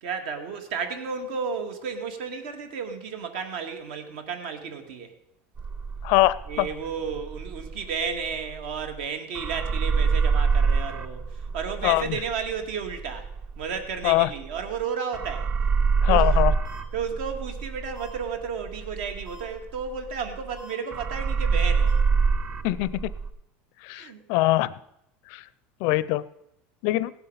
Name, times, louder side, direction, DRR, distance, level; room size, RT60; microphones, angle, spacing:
voice 1, 0.0-5.1 6.5-13.3 13.6-15.5 16.1-16.4 16.9-22.0 23.9-24.2, right 6 dB, 70° right, 7 dB, 1.9 m, -33 dB
sound 1, 5.6-9.0 9.3-14.8 15.1-20.6 20.9-23.3, right 5 dB, 25° right, 0.5 m, -26 dB
voice 2, 6.0-6.7 11.8-12.2 14.0-14.3 16.0-16.5 22.6-23.1 23.8-24.7 25.3-25.4 25.8-26.2 26.8-27.1, left 17 dB, 50° left, 18 dB, 0.5 m, -23 dB
sound 2, 16.7-16.8 18.0-18.1 19.3-19.4 20.6-20.7 21.9-22.0, left 1 dB, 90° right, 5.7 m, -44 dB
16.5 x 8.0 x 5.6 m, 0.81 s
supercardioid pair, 165°, 6 cm